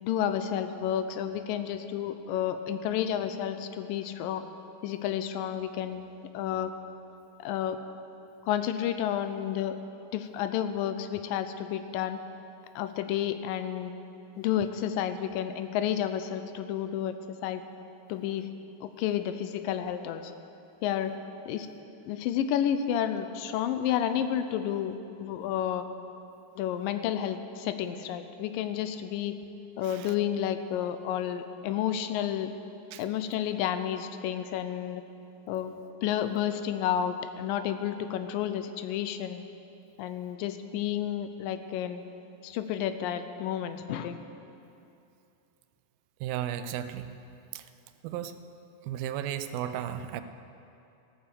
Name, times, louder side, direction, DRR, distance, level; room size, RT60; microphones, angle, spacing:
voice 1, 0.0-4.5 4.8-6.7 7.4-7.8 8.5-9.8 10.1-12.2 12.8-13.9 14.4-17.1 17.4-17.6 18.1-18.5 18.8-20.3 20.8-21.1 21.5-21.7 22.0-25.8 26.6-29.4 29.8-32.5 33.0-35.0 35.5-35.8 36.0-39.4 40.0-42.0 42.4-44.2, left 10 dB, 85° left, 10 dB, 2.3 m, -31 dB
voice 2, 46.2-47.1 47.5-47.6 48.0-48.4 48.9-50.2, right 11 dB, 90° right, 11 dB, 2.4 m, -34 dB
14.5 x 9.1 x 6.8 m, 2.8 s
omnidirectional pair, 4.0 m